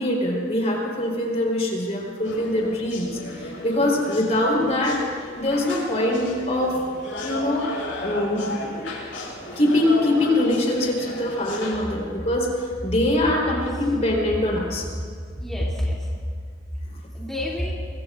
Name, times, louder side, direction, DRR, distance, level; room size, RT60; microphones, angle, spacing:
voice 1, 0.0-5.0 5.3-6.8 7.2-8.8 9.4-14.9 16.9-17.0, left 1 dB, 35° left, -1 dB, 3.8 m, -23 dB
sound 1, 2.2-11.8, left 1 dB, 90° left, 5.7 m, -35 dB
voice 2, 13.3-13.9 15.0-15.1 15.3-16.3 17.1-17.7, left 1 dB, 5° left, -7 dB, 2.6 m, -28 dB
24.0 x 23.0 x 2.5 m, 2.1 s
head